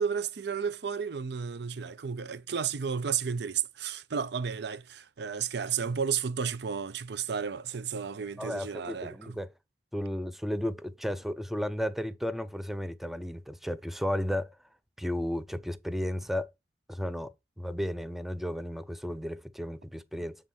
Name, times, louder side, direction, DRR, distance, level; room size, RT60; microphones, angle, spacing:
voice 1, 0.0-9.4, right 6 dB, 65° right, 0.6 m, -32 dB
voice 2, 8.4-9.5 9.9-14.6 15.0-16.5 16.9-20.4, equal, ahead, 0.4 m, -34 dB
7.8 x 3.8 x 4.1 m
head